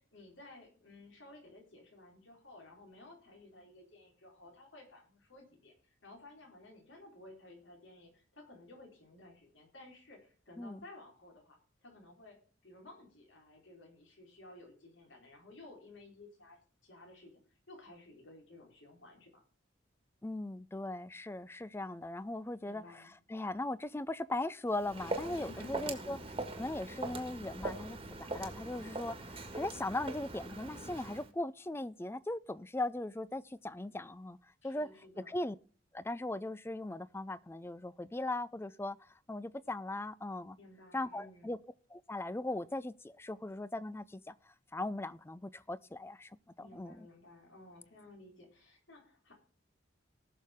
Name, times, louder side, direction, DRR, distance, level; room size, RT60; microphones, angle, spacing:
voice 1, 0.0-12.4 12.6-19.4 22.6-23.1 25.3-26.2 34.6-35.4 40.6-41.5 46.6-49.4, left 2 dB, 75° left, 4.0 m, -55 dB
voice 2, 20.2-26.2 26.6-34.4 34.6-34.9 35.3-35.6 35.9-39.0 39.3-40.6 40.9-41.6 41.9-44.3 44.7-46.4 46.7-47.1, left 2 dB, 10° left, 0.4 m, -39 dB
Walk footsteps, 24.7-31.3, right 2 dB, 30° right, 1.5 m, -42 dB
19.5 x 6.5 x 3.6 m
head